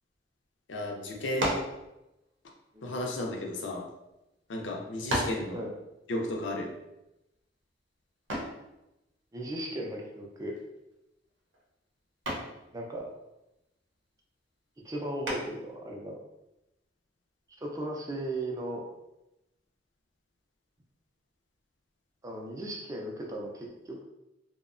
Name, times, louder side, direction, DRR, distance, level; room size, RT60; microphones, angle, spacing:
voice 1, 0.7-1.5 2.8-3.8 4.5-5.6 6.1-6.7, left 1 dB, 75° left, 1 dB, 0.5 m, -33 dB
sound 1, 1.4-1.8 2.7-3.9 4.6-4.7 5.1-5.5 8.3-8.6 10.5-10.9 11.3-11.6 12.3-12.6 15.2-15.7, right 1 dB, 85° right, 0.7 m, -33 dB
voice 2, 9.3-10.6 12.7-13.1 14.8-16.2 17.6-18.9 22.2-24.0, right 1 dB, 20° right, 0 dB, 0.4 m, -36 dB
2.6 x 2.1 x 2.4 m, 0.93 s
head